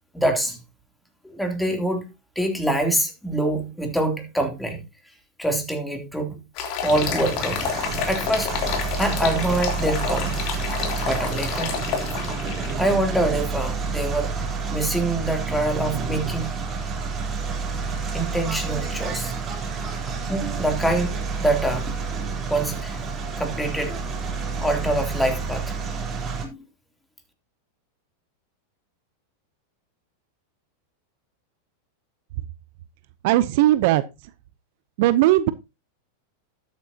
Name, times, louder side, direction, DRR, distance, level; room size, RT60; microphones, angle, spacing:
voice 1, 0.1-0.6 1.2-2.1 2.3-4.8 5.4-6.4 6.8-7.6 8.1-8.5 9.0-10.4 11.0-11.8 12.8-14.3 14.7-16.5 18.1-19.3 20.3-21.9 22.5-23.0 23.4-24.0 24.6-25.7 26.4-26.6, right 1 dB, 5° left, 3.1 m, -25 dB
sound 1, 6.6-12.7, left 7 dB, 50° left, 3.1 m, -29 dB
sound 2, 6.9-26.5, right 4 dB, 25° right, 3.7 m, -29 dB
voice 2, 33.2-34.0 35.0-35.5, right 15 dB, 60° right, 0.7 m, -18 dB
12.5 x 8.9 x 2.8 m
hypercardioid pair, 110°, 0 cm